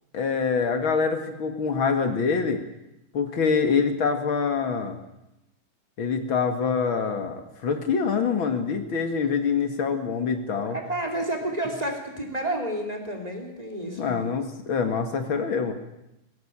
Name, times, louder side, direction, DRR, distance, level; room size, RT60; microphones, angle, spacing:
voice 1, 0.1-2.6 3.1-5.0 6.0-10.8 14.0-15.7, left 5 dB, 75° left, 7 dB, 2.6 m, -25 dB
voice 2, 10.5-14.1, right 1 dB, 20° right, 3 dB, 3.3 m, -30 dB
20.0 x 17.0 x 8.8 m, 0.90 s
omnidirectional pair, 2.3 m